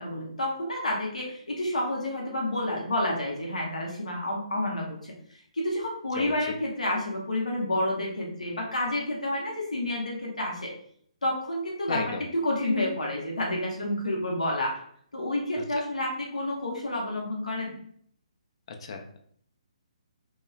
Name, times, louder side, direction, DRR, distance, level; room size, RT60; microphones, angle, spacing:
voice 1, 0.0-5.1 5.5-10.7 11.2-12.2 12.4-14.7 15.1-17.8, left 1 dB, 80° left, -2 dB, 0.7 m, -29 dB
voice 2, 11.9-12.2 15.7-15.8 18.8-19.2, left 4 dB, 50° left, 5 dB, 0.4 m, -34 dB
3.0 x 2.2 x 2.2 m, 0.63 s
figure-of-eight pair, 135°, 4 cm